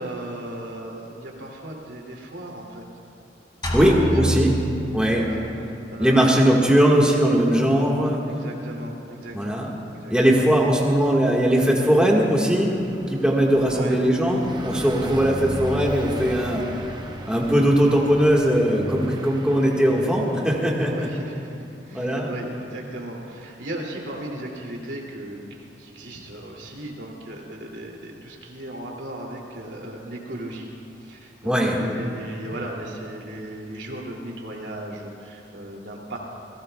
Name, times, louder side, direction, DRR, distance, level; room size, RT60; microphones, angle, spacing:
voice 1, 0.0-2.8 3.8-4.6 5.1-6.6 7.5-7.7 8.0-10.5 13.7-14.0 14.9-15.2 20.8-30.7 31.0-36.2, right 1 dB, 90° right, -1 dB, 2.6 m, -36 dB
sound 1, 3.6-5.5, right 1 dB, 25° left, 2.4 m, -27 dB
voice 2, 3.7-4.5 4.9-5.2 6.0-8.2 9.3-9.7 10.1-12.8 13.1-16.6 17.3-20.9 21.9-22.3 31.4-31.8, equal, 5° right, -3 dB, 1.6 m, -19 dB
Car passing by, 10.8-21.4, right 1 dB, 25° right, 0.9 m, -37 dB
28.5 x 17.5 x 2.3 m, 2.6 s
head